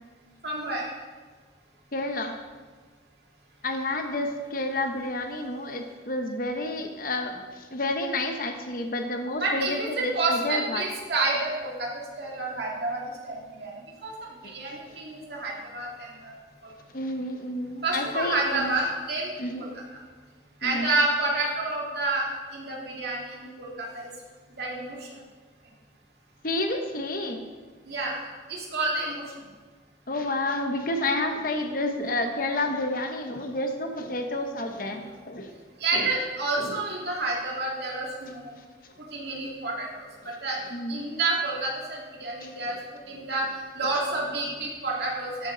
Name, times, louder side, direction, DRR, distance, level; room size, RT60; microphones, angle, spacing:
voice 1, 0.4-0.9 9.4-11.9 12.2-13.7 14.0-14.1 14.4-16.3 17.8-19.3 19.6-19.7 20.6-22.2 22.5-24.1 24.6-25.1 27.8-28.2 28.5-29.2 34.9-35.1 35.8-38.5 39.1-40.6 40.9-42.8 43.1-43.4 43.7-45.5, right 2 dB, 65° right, -3 dB, 2.5 m, -29 dB
voice 2, 1.9-2.4 3.6-10.8 14.4-14.5 14.9-15.0 16.9-18.7 19.4-19.7 20.6-20.9 26.4-27.4 30.1-35.5 35.9-36.2 36.6-36.8 40.2-40.4 40.7-41.1 42.4-42.7, left 2 dB, 50° left, 4 dB, 1.0 m, -30 dB
13.0 x 7.3 x 3.9 m, 1.4 s
head